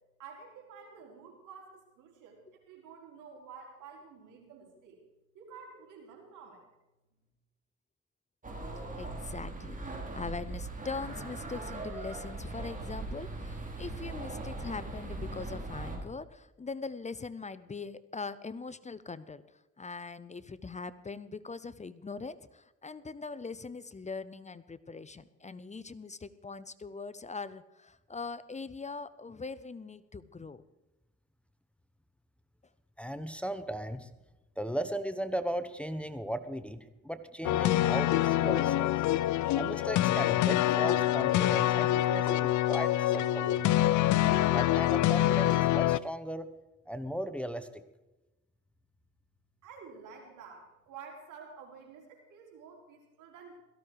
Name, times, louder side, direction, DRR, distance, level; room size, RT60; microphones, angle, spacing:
voice 1, 0.2-5.0 5.3-6.6 49.6-53.6, right 5 dB, 90° right, 1 dB, 4.6 m, -50 dB
sound 1, 8.4-16.0, right 2 dB, 25° right, 4.2 m, -40 dB
voice 2, 9.0-30.6, left 4 dB, 25° left, 16 dB, 0.7 m, -41 dB
voice 3, 33.0-34.1 34.6-39.0 39.4-43.9 44.5-46.5 46.9-47.8, right 1 dB, 5° left, 10 dB, 1.0 m, -37 dB
sound 2, 37.4-46.0, left 14 dB, 70° left, 0.6 m, -26 dB
17.5 x 14.5 x 4.8 m, 1.0 s
cardioid pair, 90°, 30 cm